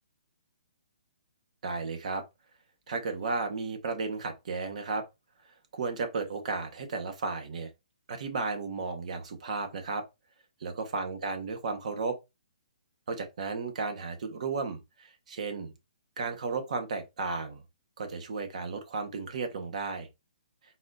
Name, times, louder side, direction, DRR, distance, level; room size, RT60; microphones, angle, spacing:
voice 1, 1.6-2.2 2.9-5.0 5.7-7.7 8.1-10.0 10.6-12.2 13.1-15.7 16.2-17.6 18.0-20.1, right 4 dB, 55° right, 1.3 m, -34 dB
4.0 x 2.6 x 3.9 m
hypercardioid pair, 160°, 4 cm